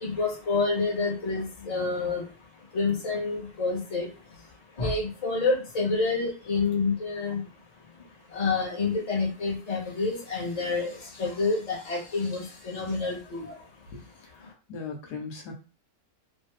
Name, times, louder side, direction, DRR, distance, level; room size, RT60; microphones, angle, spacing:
voice 1, 0.0-2.2 2.7-4.1 4.8-7.4 8.3-10.9 11.2-13.4, left 3 dB, 25° left, -2 dB, 1.0 m, -28 dB
voice 2, 13.9-15.5, left 4 dB, 75° left, 2 dB, 1.4 m, -39 dB
3.1 x 2.5 x 3.2 m, 0.35 s
omnidirectional pair, 1.8 m